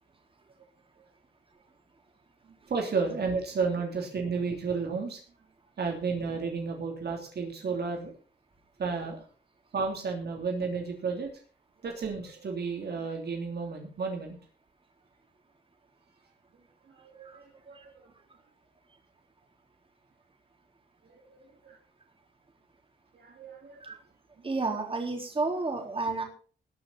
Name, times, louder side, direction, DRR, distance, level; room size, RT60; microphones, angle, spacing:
voice 1, 2.7-5.2 5.8-8.1 8.8-9.2 9.7-11.3 11.8-14.4 16.9-18.1 21.1-21.8 23.1-23.8, right 4 dB, 65° right, 2 dB, 3.1 m, -32 dB
voice 2, 17.2-17.9 23.8-24.0 24.4-26.2, right 3 dB, 30° right, 2 dB, 4.1 m, -32 dB
20.0 x 6.7 x 5.8 m, 0.40 s
wide cardioid pair, 130°, 18 cm